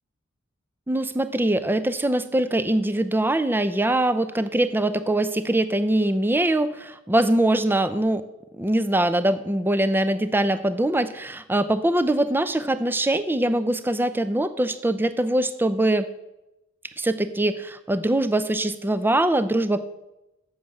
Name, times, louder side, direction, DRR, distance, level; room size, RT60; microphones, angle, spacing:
voice 1, 0.9-8.2 8.6-16.1 17.0-19.8, right 1 dB, 10° right, 12 dB, 0.4 m, -23 dB
7.4 x 6.4 x 7.2 m, 0.94 s
head